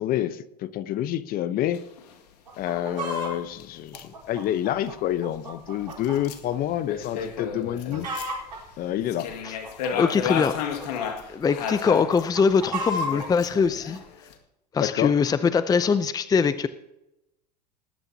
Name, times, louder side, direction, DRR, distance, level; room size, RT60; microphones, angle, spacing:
voice 1, 0.0-1.9 2.6-8.1 8.8-9.3 9.9-10.1 14.8-15.1, left 12 dB, 45° left, 14 dB, 1.0 m, -28 dB
sound 1, 1.7-2.1 2.5-2.7 2.9-3.0 3.6-3.7 3.9-4.0 5.9-8.6 9.0-12.3 12.8-14.3, left 7 dB, 70° left, 2.1 m, -33 dB
Chicken rooster, 2.5-3.3 3.9-6.2 6.5-6.6 7.2-7.4 7.7-8.6 9.3-11.1 11.5-13.3 13.9-14.0, equal, 90° right, 4.6 m, -33 dB
voice 2, 10.0-10.6 11.3-14.0 14.7-16.7, left 5 dB, 20° left, 13 dB, 0.6 m, -22 dB
19.5 x 12.0 x 2.9 m, 0.88 s
hypercardioid pair, 90°, 21 cm